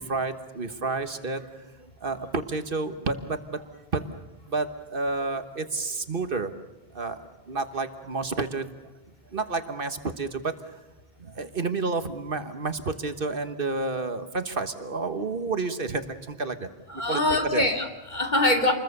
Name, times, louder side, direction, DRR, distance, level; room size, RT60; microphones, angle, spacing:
voice 1, 0.0-3.6 3.9-4.1 4.5-6.5 6.9-7.2 7.5-8.7 9.3-10.5 11.2-16.7 17.0-17.7, right 3 dB, 60° right, 9 dB, 1.5 m, -30 dB
voice 2, 16.9-18.7, left 1 dB, 45° left, 3 dB, 2.8 m, -24 dB
27.5 x 21.5 x 6.7 m, 1.1 s
omnidirectional pair, 1.0 m